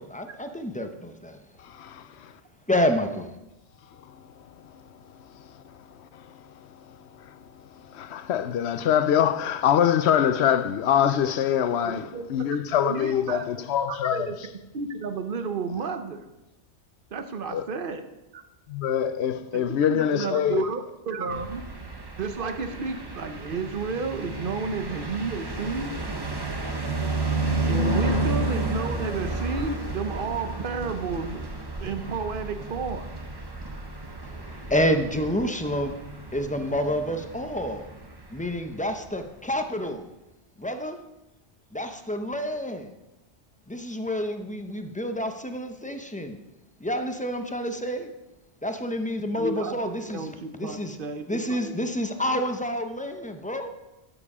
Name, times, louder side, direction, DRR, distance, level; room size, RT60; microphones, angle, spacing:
voice 1, 0.0-1.4 2.7-3.3 34.2-36.0 36.3-37.9 38.3-40.1 40.6-41.0 41.7-42.9 43.7-46.4 46.8-48.1 48.6-50.3 50.5-51.0 51.3-53.7, equal, 10° left, 0.6 m, -28 dB
voice 2, 1.7-2.0 7.9-12.0 12.3-14.3 17.5-17.7 18.7-20.7 28.1-28.2, left 9 dB, 75° left, 0.9 m, -24 dB
voice 3, 11.8-12.2 12.8-13.4 13.9-14.4 14.7-16.3 17.1-18.4 19.5-19.6 19.9-21.6 22.2-25.9 27.7-31.4 31.8-33.1 49.4-49.8 50.1-51.7, right 4 dB, 55° right, 1.0 m, -32 dB
sound 1, 21.3-39.3, right 2 dB, 25° right, 1.0 m, -32 dB
12.5 x 6.9 x 4.9 m
omnidirectional pair, 1.1 m